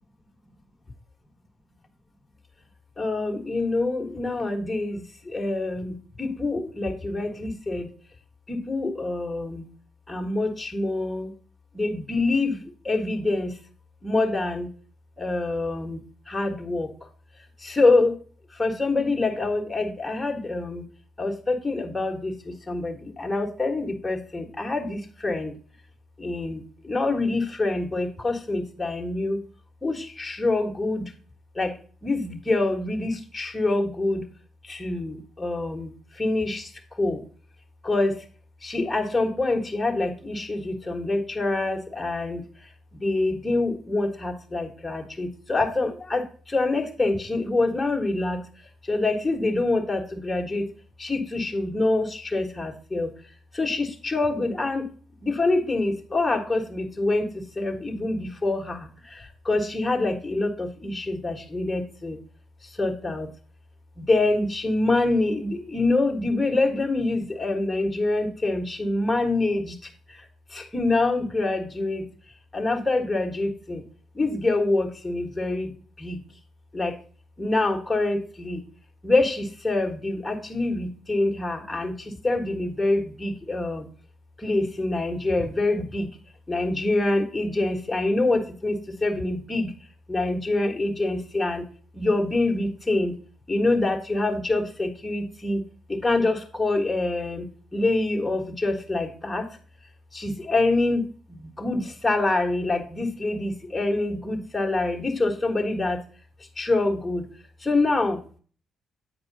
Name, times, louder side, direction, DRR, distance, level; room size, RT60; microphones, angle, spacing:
voice 1, 3.0-7.9 8.5-9.6 10.1-11.3 11.7-13.6 14.0-14.7 15.2-16.0 16.3-16.9 17.6-18.2 18.5-20.8 21.2-25.5 26.2-29.4 29.8-31.1 31.5-31.7 32.0-34.2 34.6-36.7 37.0-37.2 37.8-38.2 38.6-42.4 42.9-48.4 48.8-50.7 51.0-53.1 53.5-54.9 55.2-62.2 62.8-63.3 64.0-69.8 70.1-70.2 70.5-72.1 72.5-73.8 74.1-75.7 76.0-76.2 76.7-76.9 77.4-78.6 79.0-83.9 84.4-86.1 86.5-89.7 90.1-91.6 91.9-93.1 93.5-95.6 95.9-97.5 97.7-99.5 100.1-106.0 106.6-107.2 107.6-108.2, left 2 dB, 15° left, 1 dB, 1.4 m, -26 dB
8.4 x 4.8 x 4.0 m, 0.41 s
cardioid pair, 90°, 0 cm